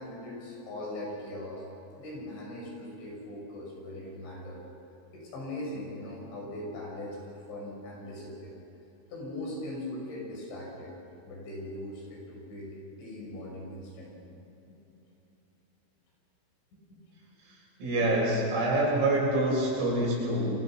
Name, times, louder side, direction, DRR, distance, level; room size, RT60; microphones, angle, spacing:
voice 1, 0.0-1.7 2.0-4.6 5.1-8.5 9.1-10.9 11.3-14.1 14.7-14.8 16.9-17.0 18.0-18.1, left 1 dB, 65° left, -2 dB, 8.6 m, -40 dB
voice 2, 17.4-20.5, right 1 dB, 90° right, -4 dB, 9.7 m, -26 dB
28.0 x 25.0 x 6.2 m, 2.9 s
omnidirectional pair, 5.7 m